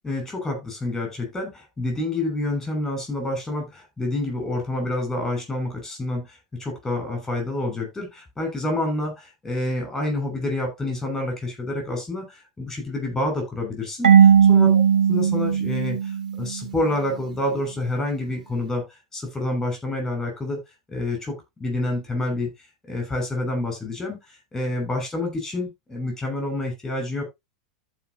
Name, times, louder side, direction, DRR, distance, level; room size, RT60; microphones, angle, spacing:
voice 1, 0.0-14.8 15.1-16.1 16.4-18.8 19.1-20.6 20.9-22.5 22.9-27.2, left 2 dB, 10° left, 3 dB, 6.5 m, -28 dB
Marimba xylophone / Wood, 14.0-16.8, right 8 dB, 85° right, 1.1 m, -17 dB
14.0 x 5.3 x 2.9 m, 0.20 s
hypercardioid pair, 100°, 4 cm